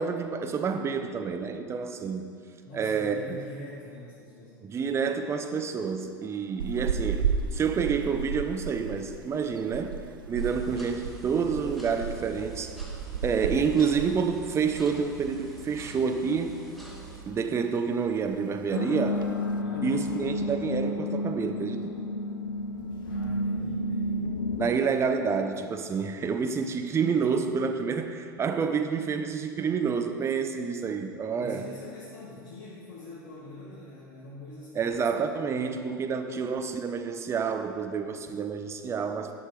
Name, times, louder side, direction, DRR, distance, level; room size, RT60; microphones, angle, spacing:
voice 1, 0.0-2.3 2.7-3.2 4.6-10.0 10.3-12.7 13.2-16.5 17.3-19.3 19.8-21.9 24.6-31.6 34.7-39.3, right 6 dB, 25° right, 7 dB, 0.7 m, -28 dB
voice 2, 2.7-4.6 19.6-19.8 23.0-24.3 31.4-34.9 35.4-35.8, left 2 dB, 50° left, -6 dB, 2.0 m, -45 dB
sound 1, 6.6-15.1 15.4-15.6 16.0-16.8 17.1-17.5 17.8-17.9 18.0-18.5 19.0-19.5, right 6 dB, 75° right, 0.5 m, -34 dB
sound 2, 10.4-17.2, right 4 dB, ahead, 1.5 m, -45 dB
sound 3, 18.7-24.7, left 2 dB, 70° left, 1.0 m, -31 dB
10.5 x 6.4 x 5.0 m, 2.3 s
figure-of-eight pair, 80°, 11 cm